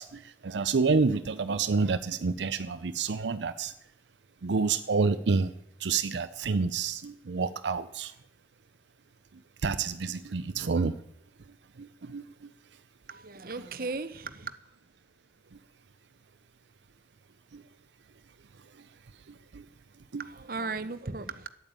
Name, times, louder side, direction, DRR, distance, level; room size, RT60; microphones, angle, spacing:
voice 1, 0.0-3.7 4.4-5.5 5.8-8.1 9.6-11.0 11.8-12.3 17.5-17.6 19.5-19.6 20.1-20.2, right 4 dB, 80° right, 0.6 m, -28 dB
voice 2, 13.1-14.6 20.2-21.5, right 3 dB, 50° right, 0.9 m, -36 dB
12.0 x 8.9 x 8.8 m
head